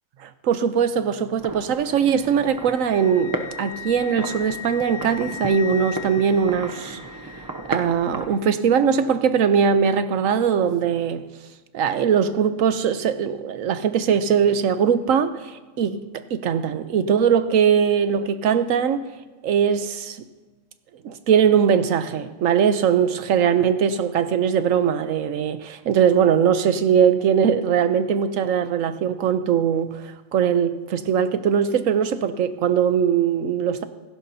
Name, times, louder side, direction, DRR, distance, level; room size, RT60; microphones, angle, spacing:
voice 1, 0.2-7.0 7.7-11.3 11.7-19.1 19.4-20.2 21.0-33.8, right 7 dB, 80° right, 1.1 m, -21 dB
sound 1, 1.4-8.4, right 2 dB, 30° right, 0.4 m, -35 dB
Wind instrument woodwind instrument, 1.9-7.9, left 7 dB, 65° left, 1.1 m, -38 dB
16.5 x 15.5 x 2.8 m
omnidirectional pair, 1.4 m